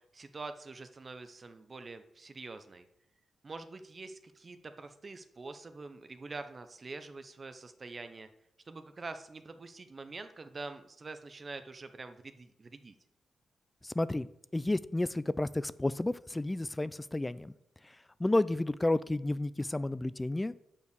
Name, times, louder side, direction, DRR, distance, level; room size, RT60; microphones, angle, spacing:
voice 1, 0.0-2.8 3.4-8.3 8.6-12.9, right 3 dB, 35° right, 9 dB, 0.6 m, -45 dB
voice 2, 13.8-14.3 14.5-17.5 17.8-20.5, left 2 dB, 15° left, 17 dB, 0.3 m, -31 dB
8.7 x 5.5 x 6.6 m, 0.80 s
cardioid pair, 115°, 0 cm